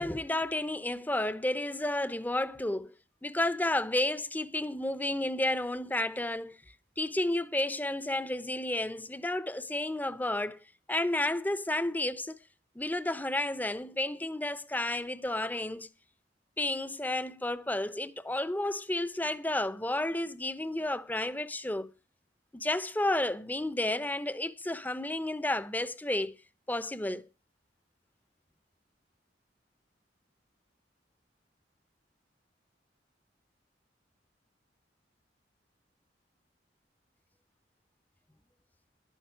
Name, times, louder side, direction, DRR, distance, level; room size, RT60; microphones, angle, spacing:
voice 1, 0.0-2.9 3.2-6.6 7.0-10.6 10.9-12.4 12.8-15.9 16.6-21.9 22.5-26.4 26.7-27.3, left 1 dB, 10° left, 0.6 m, -31 dB
11.5 x 11.5 x 4.5 m
head